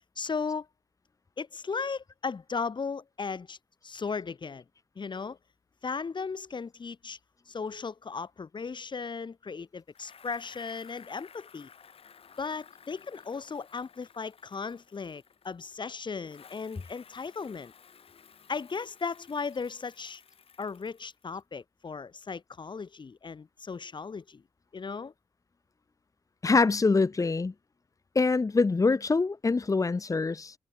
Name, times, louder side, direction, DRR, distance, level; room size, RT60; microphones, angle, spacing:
voice 1, 0.2-0.7 1.4-3.6 3.8-4.6 5.0-5.4 5.8-7.2 7.5-11.7 12.4-17.7 18.5-20.2 20.6-24.4 24.7-25.1, left 5 dB, 50° left, 2.0 m, -36 dB
Bicycle, 9.9-15.7 16.2-21.4, left 7 dB, 75° left, 7.5 m, -55 dB
voice 2, 26.4-27.5 28.1-30.5, left 4 dB, 35° left, 1.1 m, -24 dB
cardioid pair, 75°, 10 cm